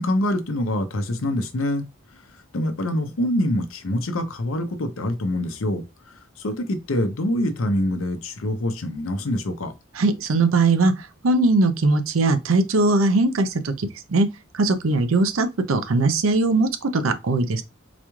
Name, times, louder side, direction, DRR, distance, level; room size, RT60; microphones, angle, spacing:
voice 1, 0.0-1.9 2.5-9.7, left 1 dB, 85° left, 0.7 m, -25 dB
voice 2, 10.0-14.3 14.5-17.6, right 3 dB, 90° right, 0.6 m, -20 dB
4.0 x 2.3 x 3.0 m
head